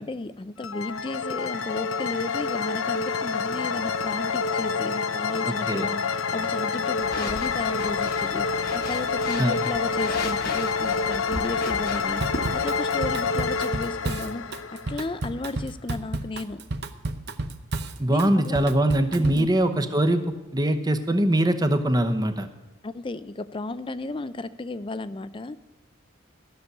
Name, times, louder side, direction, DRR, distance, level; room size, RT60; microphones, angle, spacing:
voice 1, 0.1-12.2 12.5-14.5 14.7-16.6 18.1-18.7 19.2-19.5 22.8-25.6, left 2 dB, 25° left, 14 dB, 0.4 m, -34 dB
sound 1, 0.6-15.4, left 5 dB, 85° left, 0.6 m, -28 dB
voice 2, 5.4-5.9 9.4-9.6 18.0-22.5, right 1 dB, 20° right, 8 dB, 0.9 m, -22 dB
sound 2, 7.0-12.6, left 2 dB, 50° left, 1.2 m, -36 dB
Drum kit / Drum, 12.2-19.5, right 2 dB, 55° right, 0.8 m, -32 dB
14.0 x 6.9 x 8.1 m, 1.0 s
head